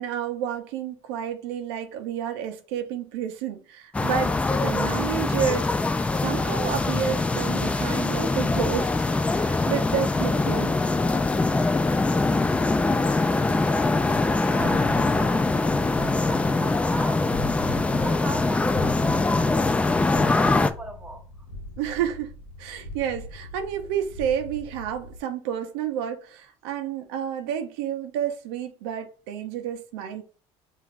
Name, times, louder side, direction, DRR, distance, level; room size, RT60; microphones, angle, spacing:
voice 1, 0.0-10.7 21.8-22.3 22.6-30.2, right 9 dB, 85° right, 0.6 m, -30 dB
sound 1, 3.9-20.7, left 3 dB, 10° left, 0.3 m, -23 dB
voice 2, 13.3-15.5 15.9-17.3 18.0-21.3, right 2 dB, 10° right, 0.8 m, -39 dB
sound 2, 14.6-25.2, left 1 dB, 85° left, 0.9 m, -40 dB
5.8 x 2.5 x 2.5 m
supercardioid pair, 110°, 13 cm